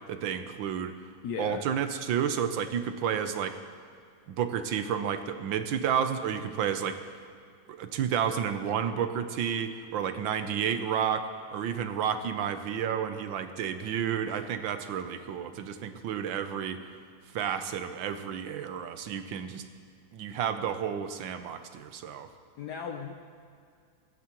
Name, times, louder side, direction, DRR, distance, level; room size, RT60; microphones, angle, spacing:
voice 1, 0.1-0.9 1.4-3.6 4.3-7.0 7.7-16.8 17.3-19.6 20.1-22.3, right 8 dB, 80° right, 9 dB, 1.5 m, -31 dB
voice 2, 1.2-1.6 22.6-23.1, left 6 dB, 65° left, 3 dB, 1.2 m, -36 dB
18.5 x 15.0 x 3.0 m, 2.3 s
omnidirectional pair, 2.1 m